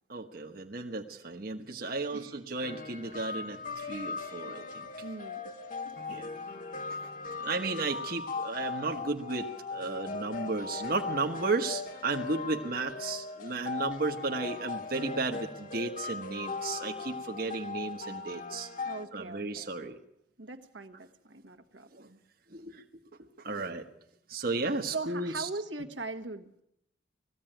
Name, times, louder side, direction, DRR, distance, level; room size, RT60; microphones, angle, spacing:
voice 1, 0.1-4.9 6.1-6.3 6.9-7.0 7.4-18.7 19.1-20.0 21.9-22.1 22.5-22.8 23.4-23.9 24.3-25.5, right 3 dB, 55° right, 4 dB, 1.3 m, -34 dB
voice 2, 1.8-2.3 5.0-5.4 5.8-6.3 18.8-19.7 20.4-22.2 24.9-26.6, right 3 dB, 80° right, 5 dB, 1.6 m, -41 dB
sound 1, 2.6-19.0, left 4 dB, 45° left, 1.4 m, -39 dB
20.0 x 15.0 x 9.0 m, 0.78 s
head